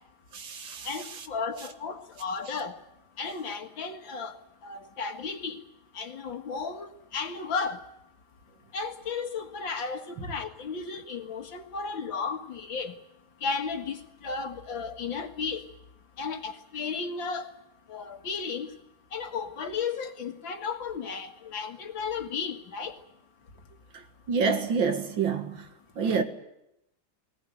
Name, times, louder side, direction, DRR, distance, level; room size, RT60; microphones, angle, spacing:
voice 1, 0.3-0.9 24.3-25.6 26.0-26.2, right 5 dB, 75° right, 2.5 m, -27 dB
voice 2, 0.9-2.7 3.2-4.4 4.6-5.6 5.9-7.8 8.7-12.9 13.4-15.6 16.2-17.5 17.9-18.7 19.1-22.9, left 5 dB, 75° left, 2.6 m, -34 dB
20.0 x 20.0 x 9.2 m
omnidirectional pair, 2.1 m